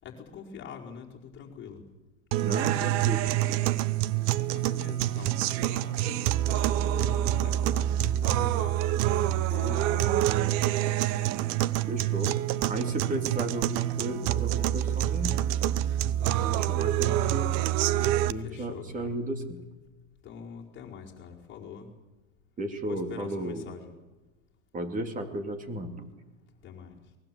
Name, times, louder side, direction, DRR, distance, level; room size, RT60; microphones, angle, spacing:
voice 1, 0.0-1.8 4.5-11.4 18.3-19.1 20.2-21.9 22.8-23.9 26.6-27.0, left 6 dB, 25° left, -2 dB, 4.6 m, -44 dB
sound 1, 2.3-18.3, right 13 dB, 40° right, 0.8 m, -27 dB
voice 2, 2.4-3.7 11.9-12.4 12.7-15.5 16.4-17.5 18.3-19.6 22.6-23.7 24.7-26.1, right 1 dB, 20° right, 6 dB, 3.0 m, -34 dB
23.5 x 20.0 x 7.7 m, 1.1 s
hypercardioid pair, 130°, 43 cm